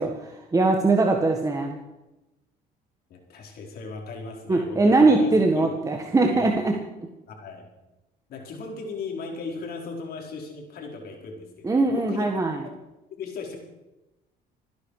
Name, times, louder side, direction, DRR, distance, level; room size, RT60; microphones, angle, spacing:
voice 1, 0.0-1.8 4.5-6.7 11.6-12.6, right 3 dB, 20° right, 2 dB, 1.7 m, -21 dB
voice 2, 3.1-5.7 6.3-6.5 7.3-7.6 8.3-12.3 12.6-12.7 13.2-13.6, left 4 dB, 65° left, 1 dB, 4.5 m, -37 dB
27.0 x 10.5 x 5.0 m, 1.0 s
cardioid pair, 110°, 17 cm